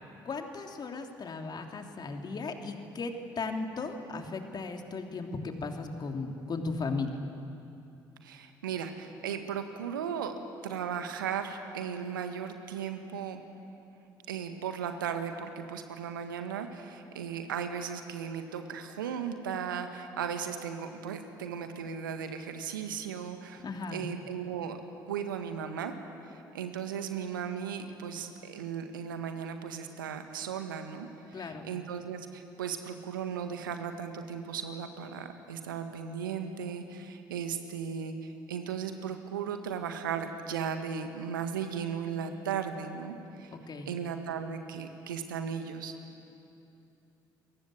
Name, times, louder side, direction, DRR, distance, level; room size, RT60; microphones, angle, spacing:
voice 1, 0.2-7.1 23.6-24.0 31.3-31.7 43.5-43.9, left 3 dB, 40° left, 4 dB, 3.2 m, -36 dB
voice 2, 8.2-10.3 10.6-13.4 14.3-23.6 23.9-24.8 25.1-26.0 26.3-43.6 43.9-45.9, right 7 dB, 80° right, 7 dB, 1.8 m, -36 dB
28.5 x 23.0 x 7.9 m, 2.8 s
figure-of-eight pair, 50°, 11 cm